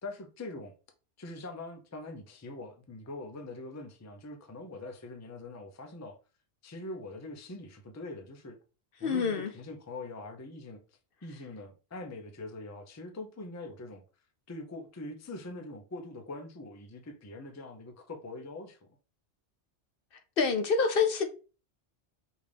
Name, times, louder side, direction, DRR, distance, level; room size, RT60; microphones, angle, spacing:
voice 1, 0.0-0.7 1.2-6.2 6.6-8.6 9.0-10.8 11.2-14.0 14.5-18.8, left 2 dB, 20° left, 0.4 m, -43 dB
voice 2, 9.0-9.5 20.1-21.2, left 5 dB, 60° left, 0.7 m, -27 dB
5.1 x 2.6 x 3.4 m
omnidirectional pair, 1.2 m